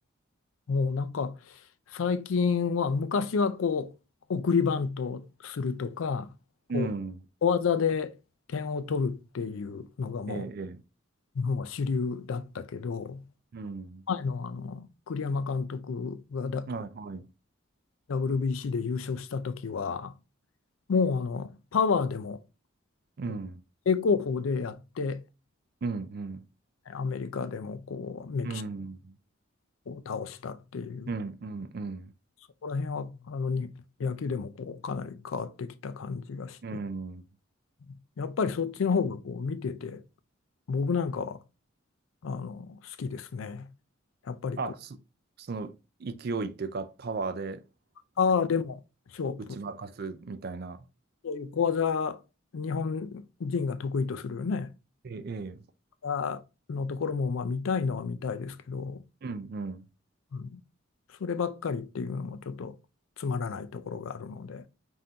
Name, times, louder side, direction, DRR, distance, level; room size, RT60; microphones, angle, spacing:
voice 1, 0.7-1.6 1.9-3.9 4.3-6.3 6.7-6.9 7.4-8.1 8.5-10.4 11.4-13.2 14.1-16.7 18.1-20.1 20.9-22.4 23.2-23.3 23.9-25.2 26.9-28.6 29.9-31.1 32.6-33.7 34.0-36.6 37.9-40.0 40.7-41.4 42.2-43.7 44.3-44.7 48.2-48.8 49.1-49.4 51.2-52.2 52.5-54.7 56.0-56.4 56.7-59.0 60.3-60.6 61.2-62.8 63.2-64.6, left 5 dB, 75° left, 0.4 m, -30 dB
voice 2, 6.7-7.2 10.3-10.8 13.5-14.0 16.7-17.3 23.2-23.6 25.8-26.4 28.4-29.0 31.1-32.1 36.6-37.2 44.6-45.0 45.4-47.6 49.4-50.8 55.0-55.6 59.2-59.9, right 4 dB, 50° right, 0.4 m, -35 dB
5.4 x 2.6 x 2.8 m
head